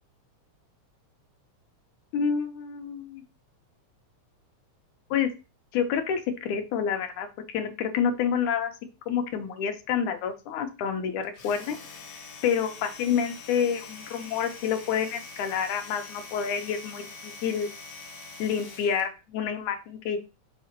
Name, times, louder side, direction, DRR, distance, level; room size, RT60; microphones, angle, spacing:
voice 1, 2.1-3.2 5.1-5.3 5.7-8.7 9.1-11.8 12.4-17.7 18.4-20.2, left 7 dB, 90° left, 6 dB, 2.5 m, -28 dB
Domestic sounds home sounds, 11.2-19.1, left 4 dB, 60° left, 0.8 m, -44 dB
6.1 x 5.6 x 3.0 m, 0.30 s
omnidirectional pair, 3.4 m